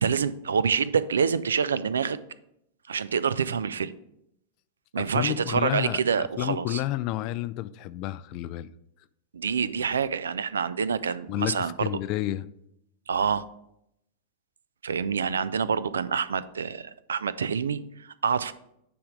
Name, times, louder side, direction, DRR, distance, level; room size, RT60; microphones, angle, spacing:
voice 1, 0.0-2.2 2.9-3.9 4.9-6.8 9.3-11.9 13.1-13.4 14.8-18.5, right 6 dB, 70° right, 0.3 m, -27 dB
voice 2, 5.0-8.7 11.3-12.5, left 15 dB, 40° left, 0.3 m, -30 dB
9.5 x 3.5 x 5.1 m
figure-of-eight pair, 90°, 0 cm